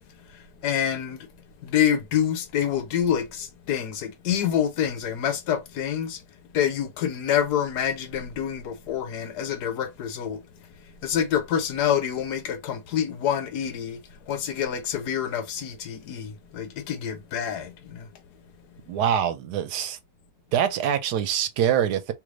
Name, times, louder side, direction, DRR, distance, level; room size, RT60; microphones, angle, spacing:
voice 1, 0.3-1.3 1.6-6.2 6.5-10.4 11.0-14.0 14.3-18.1, left 9 dB, 80° left, 1.3 m, -27 dB
voice 2, 18.9-20.0 20.5-22.1, right 9 dB, 80° right, 1.2 m, -24 dB
3.2 x 3.2 x 2.4 m
omnidirectional pair, 1.7 m